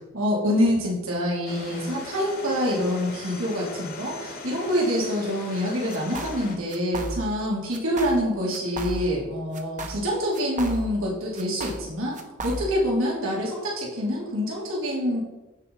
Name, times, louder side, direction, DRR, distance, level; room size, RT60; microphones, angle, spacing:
voice 1, 0.1-12.2 12.4-15.2, equal, 80° right, -4 dB, 2.9 m, -26 dB
sound 1, 1.5-6.6, left 3 dB, 50° left, 1.7 m, -39 dB
sound 2, 5.9-6.4 6.7-7.4 7.7-8.2 8.5-9.2 9.5-11.1 11.3-12.9, right 2 dB, 40° right, 1.1 m, -34 dB
15.0 x 5.5 x 4.0 m, 1.1 s
head